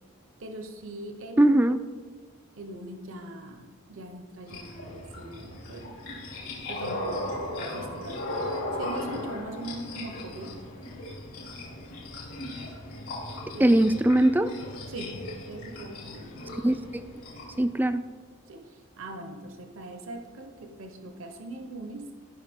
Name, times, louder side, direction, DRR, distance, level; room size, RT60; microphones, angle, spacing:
voice 1, 0.4-1.6 2.6-6.0 6.7-8.3 8.8-10.7 13.5-13.8 14.9-16.4 18.5-22.1, right 2 dB, 65° right, 5 dB, 0.9 m, -41 dB
voice 2, 1.4-1.8 13.6-14.6 16.6-17.0 17.6-18.1, right 1 dB, 10° right, 10 dB, 0.3 m, -21 dB
sound 1, 4.5-17.6, left 1 dB, 75° left, 2.9 m, -37 dB
14.5 x 5.6 x 3.6 m, 1.6 s
head